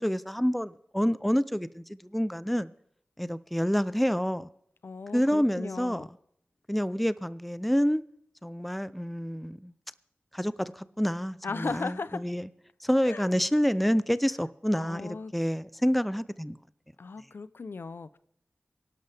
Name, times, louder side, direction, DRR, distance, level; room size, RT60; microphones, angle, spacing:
voice 1, 0.0-2.7 3.2-4.5 5.1-6.1 6.7-8.0 8.4-9.7 10.3-12.5 12.8-16.6, equal, ahead, 0.4 m, -28 dB
voice 2, 4.8-6.1 11.4-12.2 13.0-13.3 14.7-15.3 17.0-18.2, left 4 dB, 75° left, 0.5 m, -37 dB
23.5 x 11.5 x 3.4 m
wide cardioid pair, 70°, 4 cm